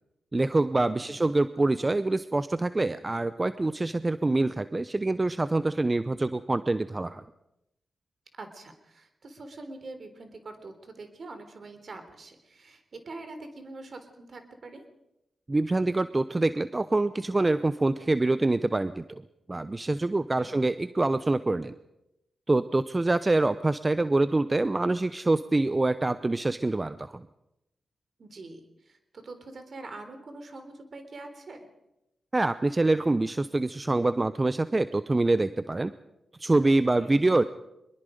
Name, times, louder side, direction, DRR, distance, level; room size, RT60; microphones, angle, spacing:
voice 1, 0.3-7.2 15.5-19.2 19.5-21.7 22.5-27.3 32.3-35.9 36.4-37.4, right 2 dB, 30° right, 13 dB, 0.8 m, -25 dB
voice 2, 8.4-14.9 20.4-20.6 28.2-31.7 36.9-37.3, right 2 dB, 60° right, 8 dB, 3.6 m, -44 dB
23.5 x 21.5 x 5.2 m, 0.88 s
supercardioid pair, 40°, 0 cm